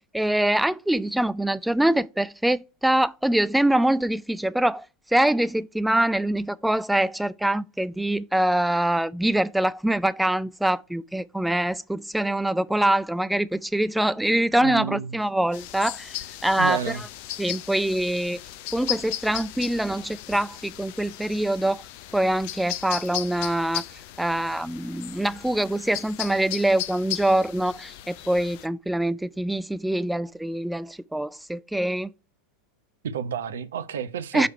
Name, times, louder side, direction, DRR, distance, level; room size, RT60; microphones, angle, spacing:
voice 1, 0.1-16.2 16.4-17.0 17.4-18.4 18.7-21.8 22.1-23.8 24.2-32.1 34.3-34.5, right 1 dB, 5° right, 0.3 m, -24 dB
voice 2, 14.6-15.2 16.5-17.0 33.0-34.5, right 7 dB, 60° right, 0.7 m, -30 dB
sound 1, 15.5-28.7, left 14 dB, 45° left, 0.5 m, -36 dB
6.7 x 3.2 x 5.6 m
figure-of-eight pair, 90°, 0 cm